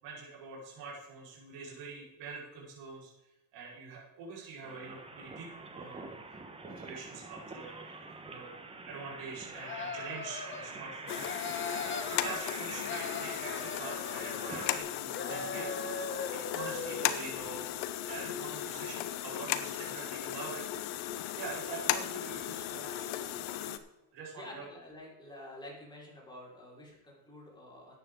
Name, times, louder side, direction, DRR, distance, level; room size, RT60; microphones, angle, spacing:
voice 1, 0.0-3.1 3.5-6.2 6.6-7.8 8.3-8.5 8.9-11.4 11.8-15.7 16.3-17.8 18.1-20.6 21.4-23.7 24.1-24.6, right 4 dB, 65° right, -4 dB, 4.9 m, -45 dB
sound 1, 4.6-14.8, right 3 dB, 10° right, 1.3 m, -45 dB
sound 2, 9.5-10.7 11.0-12.4 12.7-14.9 15.1-17.1, left 4 dB, 25° left, 1.5 m, -40 dB
sound 3, 11.1-23.8, left 12 dB, 85° left, 1.1 m, -36 dB
voice 2, 24.4-28.0, left 1 dB, 10° left, -4 dB, 4.8 m, -49 dB
13.5 x 9.8 x 3.8 m, 1.0 s
cardioid pair, 130°, 46 cm